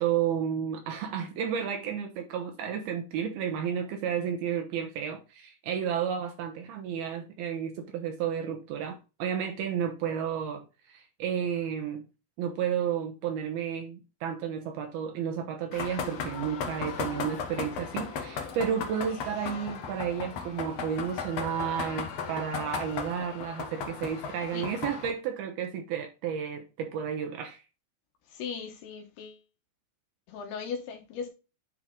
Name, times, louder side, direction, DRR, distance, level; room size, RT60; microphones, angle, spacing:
voice 1, 0.0-12.0 12.4-27.6, right 8 dB, 75° right, 2.9 m, -32 dB
sound 1, 15.7-25.1, left 6 dB, 60° left, 1.8 m, -36 dB
voice 2, 28.3-29.4 30.3-31.3, left 6 dB, 80° left, 3.3 m, -37 dB
9.7 x 4.5 x 3.8 m
omnidirectional pair, 4.6 m